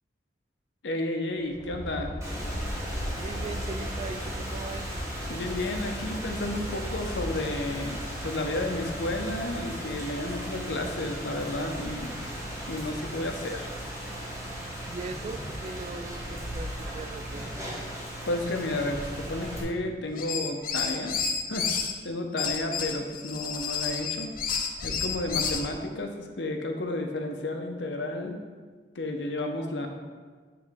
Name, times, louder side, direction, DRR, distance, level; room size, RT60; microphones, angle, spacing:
voice 1, 0.8-2.1 5.3-12.2 12.7-13.7 18.3-21.1 21.5-21.7 22.0-24.3 24.8-28.4 28.9-29.9, left 1 dB, 85° left, 4 dB, 0.8 m, -32 dB
Aircraft, 1.4-17.4, equal, 25° left, 0.8 m, -40 dB
Rain, 2.2-19.6, right 1 dB, 15° right, 1.2 m, -37 dB
voice 2, 3.2-5.0 14.8-17.5 25.3-25.5, right 3 dB, 35° right, 10 dB, 0.3 m, -40 dB
sound 1, 20.1-21.9 22.4-25.7, left 6 dB, 55° left, 0.6 m, -30 dB
8.5 x 3.8 x 3.6 m, 1.5 s
head